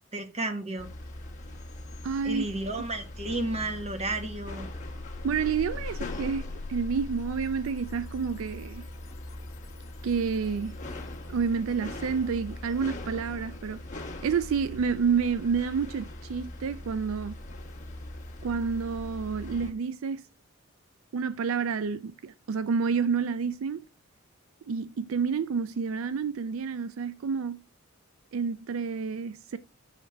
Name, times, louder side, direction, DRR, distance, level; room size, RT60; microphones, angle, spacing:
voice 1, 0.1-0.9 2.2-4.7, right 2 dB, 30° right, 1.2 m, -32 dB
sound 1, 0.8-19.7, left 1 dB, 40° left, 1.4 m, -41 dB
voice 2, 2.0-2.5 5.2-8.8 10.0-10.8 11.3-17.3 18.4-20.2 21.1-23.8 24.7-27.6 28.3-29.6, right 6 dB, 80° right, 0.4 m, -29 dB
sound 2, 5.1-10.6, left 3 dB, 75° left, 0.5 m, -42 dB
6.5 x 3.6 x 5.6 m
head